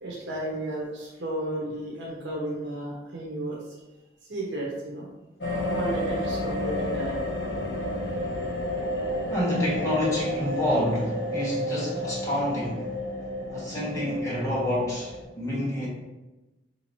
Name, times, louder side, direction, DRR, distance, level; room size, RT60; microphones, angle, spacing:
voice 1, 0.0-3.6 4.3-5.1 5.7-7.2, right 1 dB, 80° right, -4 dB, 0.8 m, -33 dB
sound 1, 5.4-15.2, left 1 dB, 80° left, 1.1 m, -31 dB
voice 2, 9.3-12.9 13.5-15.9, left 1 dB, 20° left, -7 dB, 1.4 m, -28 dB
5.0 x 2.8 x 3.0 m, 1.1 s
head